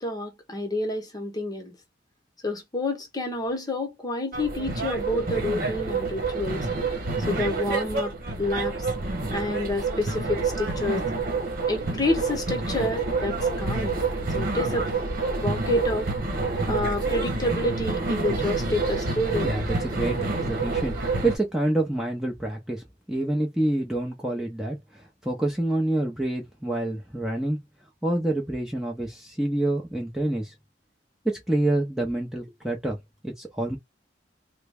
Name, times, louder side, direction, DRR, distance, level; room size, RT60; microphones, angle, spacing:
voice 1, 0.0-1.7 2.4-6.7 7.3-8.9 9.3-11.0 11.7-14.0 14.3-14.9 15.4-16.1 16.7-19.6, left 1 dB, 20° left, 1.0 m, -29 dB
sound 1, 4.3-21.4, right 3 dB, 50° right, 1.1 m, -28 dB
voice 2, 19.4-20.9 21.2-24.8 25.2-27.6 28.0-30.5 31.2-33.0 33.2-33.8, right 1 dB, 5° right, 0.7 m, -27 dB
3.5 x 2.1 x 3.4 m
head